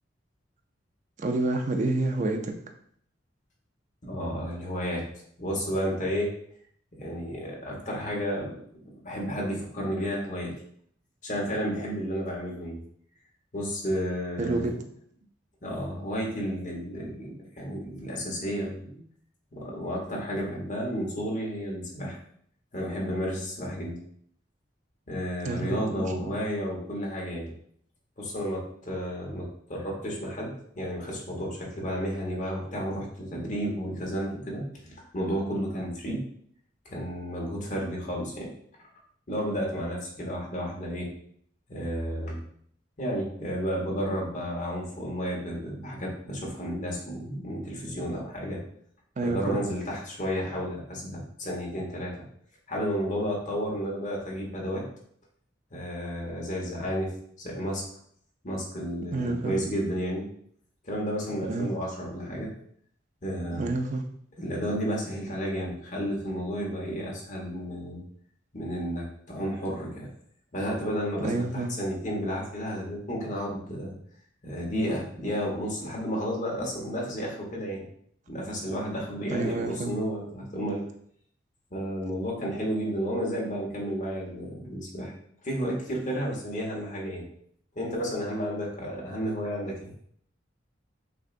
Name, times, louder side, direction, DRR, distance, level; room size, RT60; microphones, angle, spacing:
voice 1, 1.2-2.6 14.4-14.8 25.4-26.3 49.2-49.6 59.1-59.5 61.5-61.7 63.5-64.0 71.2-71.7 79.3-79.9, right 2 dB, 40° right, 4 dB, 0.5 m, -29 dB
voice 2, 4.0-5.0 5.4-6.3 6.9-8.5 8.8-10.5 11.2-12.8 13.5-14.7 15.6-19.0 19.5-22.2 22.7-24.0 25.1-27.5 28.2-34.6 34.9-36.2 36.8-38.5 39.3-41.1 41.7-42.4 43.0-48.6 49.2-52.2 52.7-54.8 55.7-57.8 58.4-60.3 60.8-62.5 63.2-63.7 64.4-68.0 68.5-70.1 70.5-73.9 74.4-77.8 78.3-80.8 81.7-85.1 85.4-87.3 87.7-89.9, equal, 40° left, -2 dB, 1.1 m, -32 dB
6.3 x 2.4 x 2.5 m, 0.65 s
head